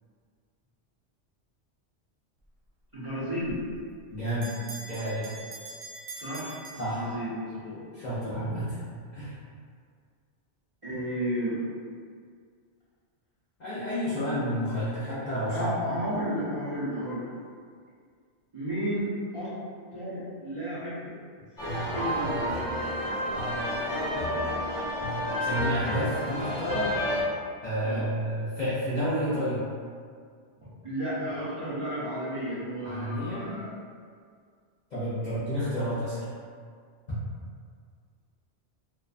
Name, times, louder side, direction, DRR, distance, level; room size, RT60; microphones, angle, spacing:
voice 1, 2.9-3.6 6.1-7.8 8.1-8.5 10.8-11.6 15.5-17.2 18.5-19.6 19.9-21.1 21.6-23.2 23.9-24.5 27.8-28.1 30.6-33.8 35.2-35.3, equal, 35° right, -13 dB, 0.6 m, -33 dB
Bell, 3.6-7.5, right 2 dB, 80° right, 0.3 m, -44 dB
voice 2, 4.1-4.5 4.9-5.3 6.8-7.1 7.9-8.8 9.1-9.3 13.6-15.7 25.4-26.9 27.6-29.6 32.8-33.5 34.9-36.3 37.1-37.2, equal, 50° left, -11 dB, 0.5 m, -30 dB
sound 1, 21.6-27.2, equal, 30° left, 0.9 m, -30 dB
2.5 x 2.2 x 2.4 m, 2.1 s
omnidirectional pair, 1.2 m